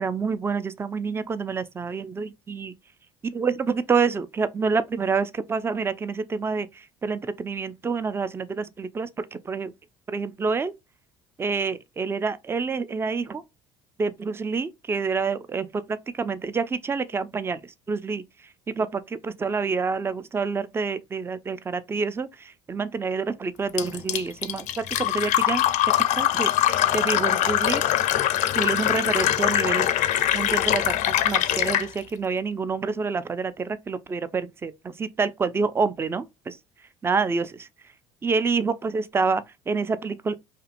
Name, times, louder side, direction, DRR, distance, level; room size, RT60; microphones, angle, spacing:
voice 1, 0.0-2.7 3.3-6.7 7.0-9.1 9.5-9.7 10.1-10.7 11.4-13.4 14.0-17.6 17.9-18.2 18.8-22.3 22.7-24.6 25.0-25.6 26.2-26.5 26.9-27.8 28.5-29.9 30.3-36.6 37.0-37.7 38.2-40.4, right 4 dB, 15° right, 0.3 m, -27 dB
Fill (with liquid), 23.8-31.9, left 12 dB, 60° left, 0.4 m, -23 dB
2.7 x 2.5 x 2.4 m
hypercardioid pair, 70°, 14 cm